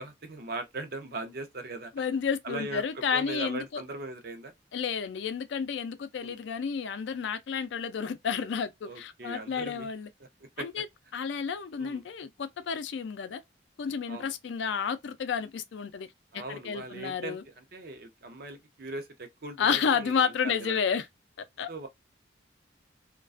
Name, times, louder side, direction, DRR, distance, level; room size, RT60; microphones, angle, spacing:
voice 1, 0.0-1.9 2.4-4.5 6.2-6.4 8.9-9.9 10.6-10.7 11.8-12.0 14.1-14.3 16.3-20.8 21.7-21.9, right 2 dB, 50° right, 0.5 m, -39 dB
voice 2, 2.0-3.8 4.7-10.1 10.6-10.9 11.1-13.4 13.8-16.1 16.3-17.4 19.6-21.1 21.4-21.7, left 6 dB, 70° left, 0.4 m, -31 dB
2.4 x 2.2 x 2.4 m
head